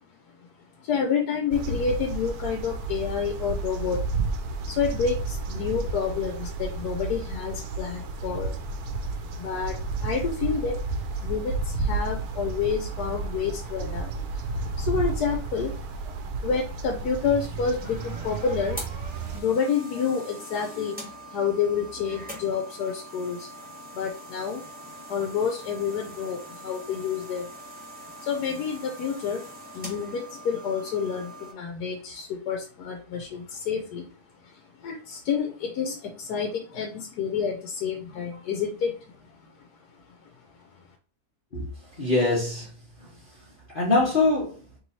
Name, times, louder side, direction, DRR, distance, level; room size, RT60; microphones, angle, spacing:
voice 1, 0.8-4.0 4.7-8.6 9.4-10.8 11.2-16.1 16.4-18.8 19.3-21.0 21.3-23.5 23.9-24.6 25.1-27.5 28.0-29.4 29.7-34.1 34.4-39.7 40.2-40.3, left 6 dB, 90° left, 1.2 m, -29 dB
sound 1, 1.5-19.4, right 3 dB, 75° right, 1.1 m, -32 dB
sound 2, 17.5-31.5, right 1 dB, 5° right, 1.2 m, -43 dB
voice 2, 41.5-42.7 43.0-43.1 43.7-44.6, left 2 dB, 35° left, 1.1 m, -24 dB
3.1 x 3.1 x 4.1 m
omnidirectional pair, 1.7 m